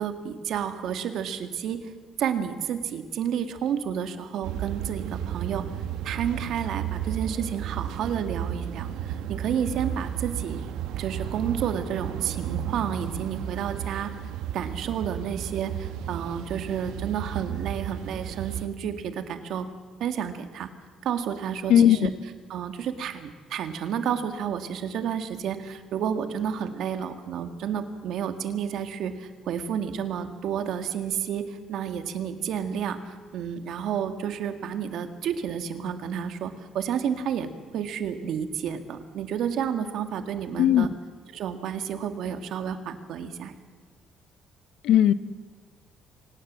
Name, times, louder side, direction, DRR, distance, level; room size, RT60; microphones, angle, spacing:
voice 1, 0.0-1.9 2.2-5.6 6.0-10.6 10.9-14.1 14.5-19.7 20.0-20.7 21.0-22.1 22.5-40.9 41.3-43.6, right 8 dB, 60° right, 8 dB, 1.9 m, -31 dB
sound 1, 4.4-18.7, right 10 dB, 80° right, 1.3 m, -33 dB
voice 2, 21.7-22.1 40.6-40.9 44.8-45.1, left 10 dB, 70° left, 15 dB, 0.8 m, -18 dB
25.0 x 18.5 x 7.5 m, 1.4 s
cardioid pair, 165°, 0 cm